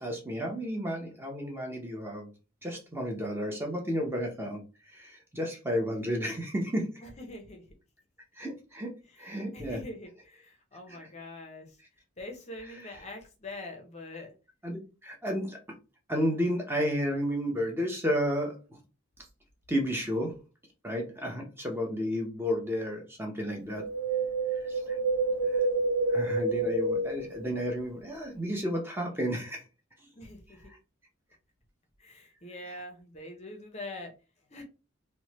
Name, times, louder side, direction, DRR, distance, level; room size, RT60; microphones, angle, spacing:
voice 1, 0.0-2.3 2.6-4.6 4.9-7.0 8.4-8.9 9.2-9.8 11.0-11.1 12.8-13.0 14.6-15.6 16.1-18.6 19.7-20.4 20.8-23.8 24.6-25.0 25.5-25.6 26.1-29.6 30.7-30.8, equal, 10° right, 1 dB, 0.6 m, -32 dB
voice 2, 7.0-7.6 9.0-11.8 12.2-14.3 30.2-30.7 32.0-34.1 34.5-34.6, left 2 dB, 30° left, 4 dB, 0.5 m, -44 dB
Wind, 23.7-28.0 28.3-28.4, right 3 dB, 85° right, 0.9 m, -29 dB
3.0 x 2.1 x 2.9 m, 0.31 s
head